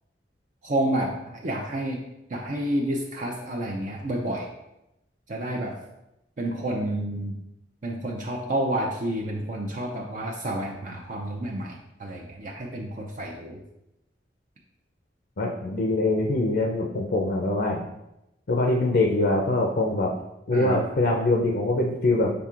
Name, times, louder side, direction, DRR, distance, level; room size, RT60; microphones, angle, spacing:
voice 1, 0.6-2.0 2.3-4.5 5.3-5.7 6.4-7.3 7.8-11.7 12.0-13.6 20.5-20.8, right 1 dB, 45° right, -1 dB, 0.5 m, -29 dB
voice 2, 15.4-17.8 18.5-20.1 20.5-22.3, left 2 dB, 60° left, 0 dB, 0.5 m, -23 dB
5.8 x 3.6 x 2.4 m, 0.89 s
head